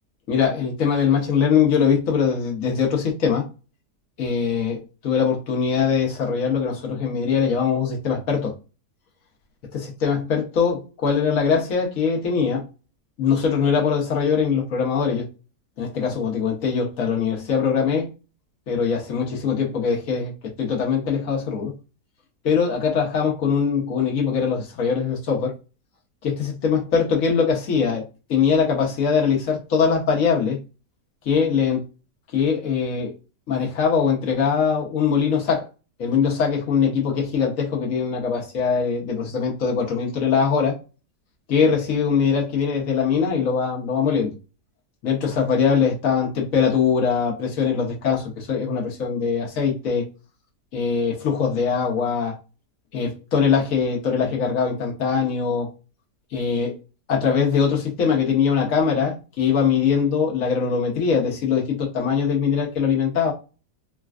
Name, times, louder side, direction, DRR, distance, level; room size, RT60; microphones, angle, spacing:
voice 1, 0.3-3.5 4.2-8.5 9.7-12.6 13.2-15.3 15.8-18.1 18.7-20.3 20.6-21.7 22.4-25.5 26.2-28.0 28.3-30.6 31.2-31.8 32.3-33.1 33.5-35.7 36.0-40.8 41.5-44.3 45.0-50.1 50.7-52.4 52.9-55.7 56.3-56.7 57.1-63.3, left 6 dB, 55° left, 1.3 m, -22 dB
4.1 x 2.2 x 2.4 m
omnidirectional pair, 1.8 m